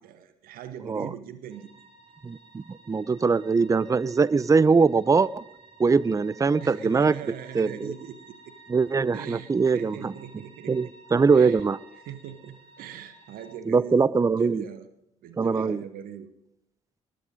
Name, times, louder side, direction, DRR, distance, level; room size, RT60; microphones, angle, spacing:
voice 1, 0.0-1.7 6.6-8.5 9.1-10.9 11.3-11.6 12.0-14.9 15.2-16.3, right 9 dB, 65° right, 11 dB, 1.2 m, -41 dB
sound 1, 1.5-13.5, right 3 dB, 40° right, 5.4 m, -53 dB
voice 2, 2.2-5.4 5.8-7.2 7.5-7.9 8.7-10.1 10.7-11.8 13.7-14.6 15.4-15.8, right 4 dB, 20° right, 21 dB, 0.5 m, -22 dB
20.0 x 10.5 x 5.2 m, 0.84 s
figure-of-eight pair, 45°, 16 cm